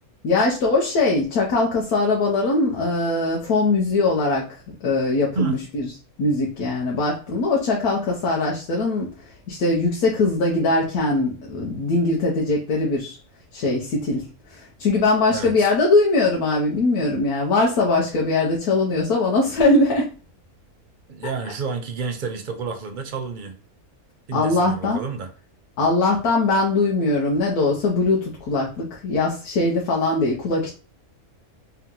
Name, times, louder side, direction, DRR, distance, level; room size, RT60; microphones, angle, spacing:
voice 1, 0.2-4.5 4.8-5.8 6.2-9.1 9.5-13.2 13.5-20.1 24.3-25.0 25.8-30.7, left 2 dB, 85° left, 1.3 m, -21 dB
voice 2, 15.3-15.7 21.1-23.6 24.3-25.3, right 5 dB, 55° right, 0.5 m, -30 dB
3.5 x 2.9 x 3.7 m
omnidirectional pair, 1.6 m